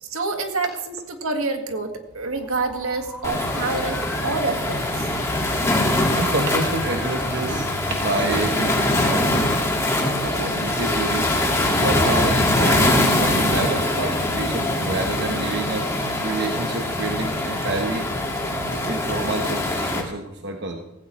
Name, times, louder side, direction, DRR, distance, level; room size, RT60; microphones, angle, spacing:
voice 1, 0.0-5.1, right 3 dB, 75° right, 5 dB, 1.8 m, -27 dB
sound 1, 2.1-9.3, equal, 5° right, 2.6 m, -39 dB
Waves surf, 3.2-20.0, left 1 dB, 15° left, 2.0 m, -23 dB
sound 2, 4.6-8.6 8.9-11.2 11.5-12.9, left 1 dB, 65° left, 1.3 m, -37 dB
voice 2, 6.2-9.5 10.2-11.3 11.7-15.9 16.2-18.1 18.7-20.8, right 2 dB, 50° right, 3 dB, 1.1 m, -28 dB
17.0 x 16.0 x 3.2 m, 0.90 s
head